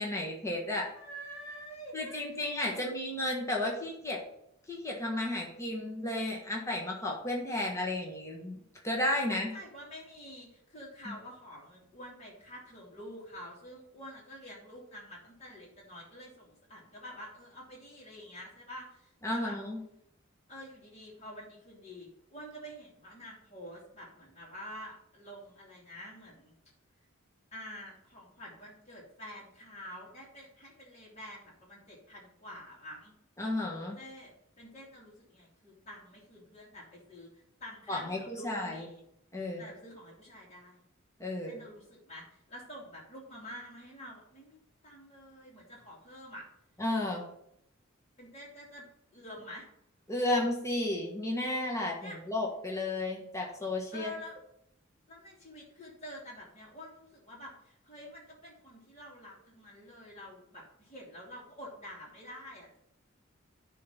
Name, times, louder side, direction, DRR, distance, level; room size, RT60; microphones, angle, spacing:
voice 1, 0.0-0.9 1.9-4.2 4.7-9.5 11.0-11.1 19.2-19.8 33.4-34.0 37.9-38.9 39.3-39.6 41.2-41.6 46.8-47.2 50.1-54.1, left 1 dB, 15° left, -1 dB, 1.5 m, -33 dB
voice 2, 0.9-2.8 9.3-19.6 20.5-26.5 27.5-33.1 33.9-34.3 34.6-39.0 39.6-40.8 41.4-46.4 48.2-48.9 49.1-49.7 52.0-52.2 53.9-54.3 55.1-62.8, equal, 30° left, -5 dB, 2.7 m, -48 dB
10.5 x 3.8 x 5.7 m, 0.74 s
head